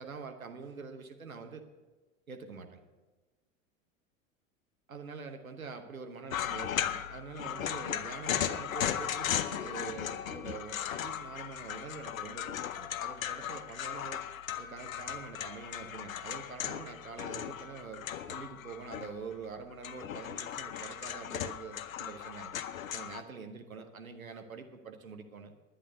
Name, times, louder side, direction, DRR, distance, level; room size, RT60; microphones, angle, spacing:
voice 1, 0.0-1.6 2.3-2.8 4.9-14.2 14.6-22.5 22.9-25.5, right 5 dB, 90° right, 6 dB, 1.1 m, -45 dB
sound 1, 6.3-19.4 19.7-23.2, left 10 dB, 75° left, 0.8 m, -37 dB
11.5 x 9.9 x 6.6 m, 1.2 s
figure-of-eight pair, 80°, 40 cm